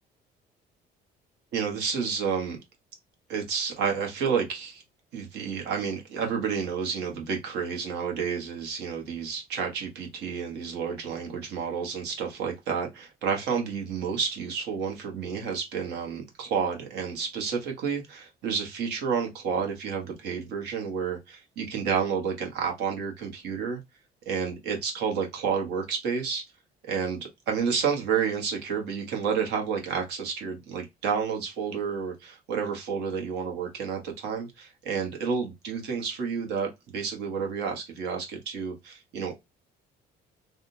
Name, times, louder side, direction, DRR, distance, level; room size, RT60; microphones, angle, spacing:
voice 1, 1.5-2.6 3.3-4.8 5.1-23.8 24.2-26.4 26.9-39.3, right 6 dB, 85° right, 1.4 m, -30 dB
3.5 x 2.4 x 2.7 m
cardioid pair, 110°, 17 cm